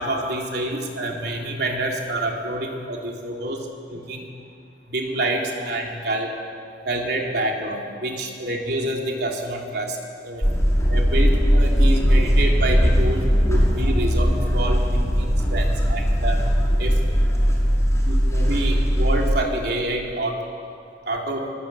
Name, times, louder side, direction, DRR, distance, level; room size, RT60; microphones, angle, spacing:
voice 1, 0.0-4.3 4.9-6.3 6.8-10.4 10.9-16.4 16.8-16.9 18.1-20.4 21.1-21.5, right 1 dB, 65° right, 0 dB, 3.7 m, -27 dB
sound 1, 10.4-19.3, equal, 15° left, 5.9 m, -19 dB
24.0 x 21.5 x 8.5 m, 2.5 s
head